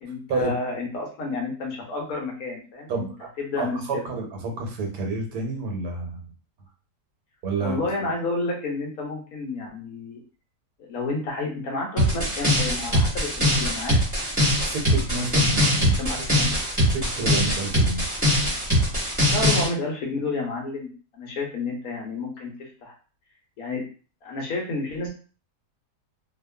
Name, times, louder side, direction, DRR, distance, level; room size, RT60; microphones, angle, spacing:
voice 1, 0.0-3.1 3.4-4.0 7.6-10.2 10.8-14.0 15.5-16.5 19.2-20.9 21.2-22.9 23.6-23.8 24.2-25.1, left 3 dB, 65° left, 0 dB, 1.2 m, -30 dB
voice 2, 2.9-3.3 3.6-6.2 7.4-7.8 14.6-16.0 16.9-18.1, right 3 dB, 75° right, 2 dB, 1.2 m, -29 dB
sound 1, 12.0-19.7, equal, 15° right, 0.9 m, -22 dB
2.8 x 2.3 x 2.2 m, 0.38 s
omnidirectional pair, 1.7 m